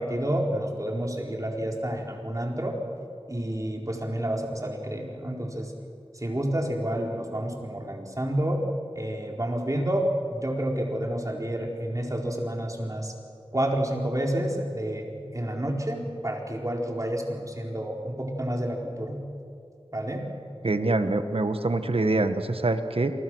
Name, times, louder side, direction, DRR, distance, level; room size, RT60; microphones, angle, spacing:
voice 1, 0.0-2.8 3.3-5.7 6.2-8.6 8.9-13.1 13.5-19.2 19.9-20.2, right 1 dB, 35° right, 0 dB, 4.4 m, -29 dB
voice 2, 20.6-23.1, right 2 dB, 65° right, 8 dB, 1.6 m, -25 dB
28.5 x 24.0 x 6.4 m, 2.4 s
wide cardioid pair, 45°, 10 cm